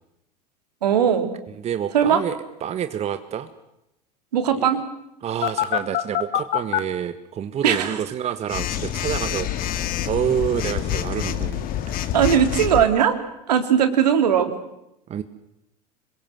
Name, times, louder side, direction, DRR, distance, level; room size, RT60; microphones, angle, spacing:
voice 1, 0.8-1.3 1.9-2.2 4.3-4.8 7.6-8.0 12.1-13.2 13.5-14.5, right 8 dB, 70° right, 8 dB, 3.2 m, -19 dB
voice 2, 1.6-3.5 4.6-4.7 5.2-11.7 15.1-15.2, right 9 dB, 30° right, 10 dB, 1.5 m, -28 dB
Telephone, 5.4-6.8 8.5-12.8, left 12 dB, 45° left, 2.0 m, -26 dB
26.5 x 22.5 x 7.7 m, 0.85 s
figure-of-eight pair, 85°, 21 cm